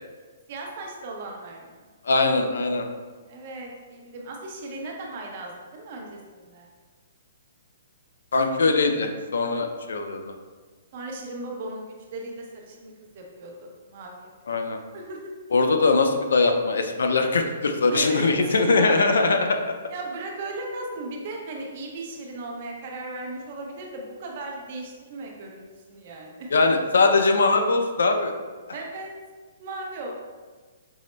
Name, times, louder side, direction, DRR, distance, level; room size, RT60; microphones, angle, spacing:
voice 1, 0.5-1.9 3.3-6.7 10.9-14.6 14.9-15.2 17.9-19.5 19.9-26.5 28.7-29.1 29.6-30.1, right 2 dB, 40° right, 0 dB, 0.6 m, -36 dB
voice 2, 2.0-2.9 8.3-10.3 14.5-14.8 15.5-19.5 26.5-28.3, left 3 dB, 90° left, 6 dB, 0.4 m, -21 dB
5.3 x 2.0 x 3.2 m, 1.4 s
hypercardioid pair, 165°, 0 cm